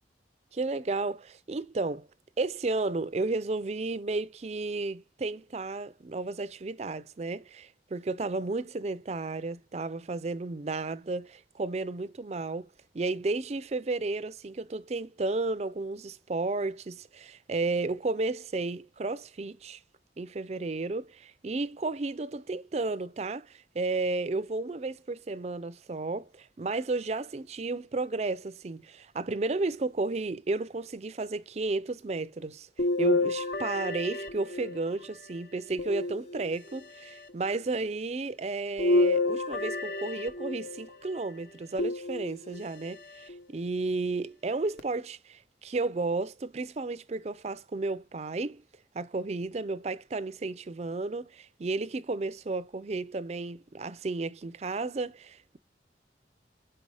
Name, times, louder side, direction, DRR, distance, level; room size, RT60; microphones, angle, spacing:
voice 1, 0.5-2.1 2.4-12.7 12.9-19.8 20.2-32.7 33.0-48.6 48.9-55.6, right 3 dB, 35° right, 0.4 m, -33 dB
sound 1, 32.8-35.1 35.8-36.8 38.8-40.9 41.8-42.7 43.3-43.4 44.8-44.9, left 2 dB, 65° left, 0.9 m, -29 dB
5.4 x 4.5 x 4.8 m
head